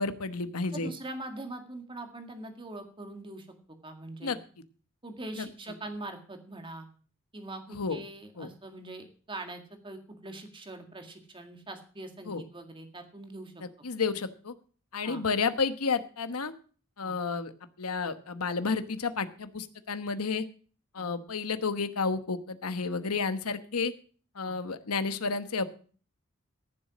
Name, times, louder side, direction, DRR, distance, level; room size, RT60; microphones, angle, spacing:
voice 1, 0.0-0.9 4.2-4.4 5.4-5.5 7.7-8.0 8.4-8.5 12.2-12.4 13.6-14.5 14.9-16.5 17.0-17.5 17.8-20.4 20.9-23.9 24.3-25.6, left 4 dB, 85° left, 11 dB, 1.1 m, -31 dB
voice 2, 0.6-3.5 3.8-4.4 5.0-6.9 7.3-13.6 15.0-15.2 17.0-17.2 21.0-21.1 24.4-24.6, right 2 dB, 25° right, 5 dB, 1.9 m, -42 dB
14.5 x 7.4 x 6.2 m, 0.42 s
head